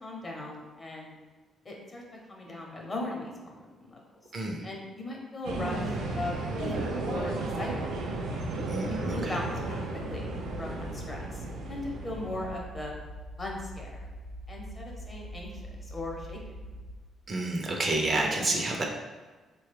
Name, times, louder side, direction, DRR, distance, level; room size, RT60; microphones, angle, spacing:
voice 1, 0.0-1.2 1.6-2.0 2.3-4.0 4.6-6.8 7.0-7.9 8.9-9.8 10.1-11.3 11.7-13.0 13.4-14.1 14.5-15.6 15.9-16.4, left 1 dB, 30° left, -1 dB, 0.8 m, -38 dB
voice 2, 4.3-4.6 8.7-9.3 17.3-18.8, right 2 dB, 40° right, 1 dB, 0.6 m, -29 dB
sound 1, 5.4-12.6, right 2 dB, 90° right, 0.5 m, -34 dB
sound 2, 10.1-17.0, equal, 65° left, 0.7 m, -43 dB
3.8 x 2.3 x 3.3 m, 1.3 s
cardioid pair, 90°, 0 cm